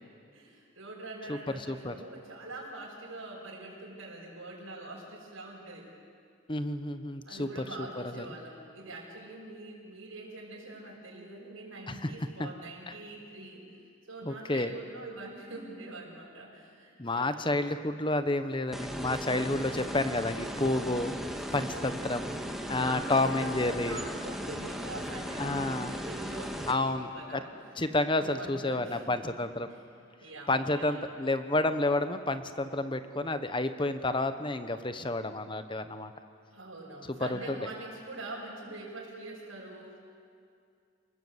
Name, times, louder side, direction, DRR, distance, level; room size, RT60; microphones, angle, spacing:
voice 1, 0.3-5.9 7.2-13.6 14.1-17.4 21.7-22.1 22.8-27.5 28.2-29.2 29.7-29.8 30.2-31.0 36.5-40.0, right 2 dB, 90° right, -5 dB, 5.7 m, -44 dB
voice 2, 1.3-1.9 6.5-8.3 11.9-12.1 12.4-12.5 14.2-14.7 17.0-21.1 21.5-22.4 22.7-24.0 25.4-25.9 26.7-27.4 27.8-29.7 30.5-36.1 37.1-37.7, left 2 dB, 25° left, 10 dB, 1.1 m, -30 dB
sound 1, 18.7-26.7, equal, ahead, 1.7 m, -37 dB
29.5 x 20.5 x 8.1 m, 2.3 s
head